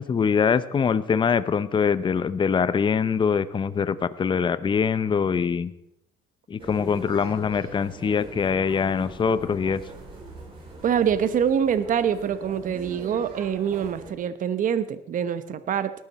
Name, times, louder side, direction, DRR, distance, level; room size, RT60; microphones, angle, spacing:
voice 1, 0.0-5.7 6.5-9.8, left 6 dB, 30° left, 15 dB, 0.7 m, -23 dB
sound 1, 6.6-14.1, right 2 dB, 30° right, 6.0 m, -41 dB
voice 2, 10.8-15.9, right 8 dB, 50° right, 13 dB, 1.1 m, -25 dB
18.5 x 12.5 x 4.2 m, 0.83 s
cardioid pair, 110°, 17 cm